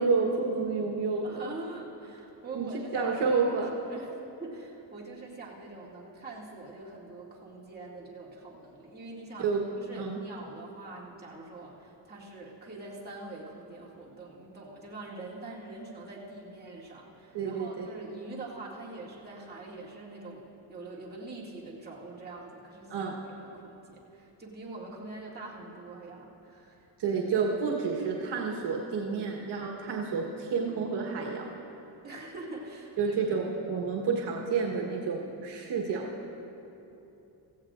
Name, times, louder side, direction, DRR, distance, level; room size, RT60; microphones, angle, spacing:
voice 1, 0.0-1.4 2.5-2.7 2.9-3.7 9.4-9.6 10.0-10.2 17.3-17.9 22.9-23.1 27.0-31.5 33.0-36.1, right 5 dB, 65° right, -1 dB, 1.3 m, -29 dB
voice 2, 1.2-9.5 9.8-23.1 23.4-26.9 32.0-33.1, right 2 dB, 20° right, -5 dB, 2.3 m, -44 dB
16.5 x 15.5 x 2.5 m, 2.9 s
cardioid pair, 115°, 44 cm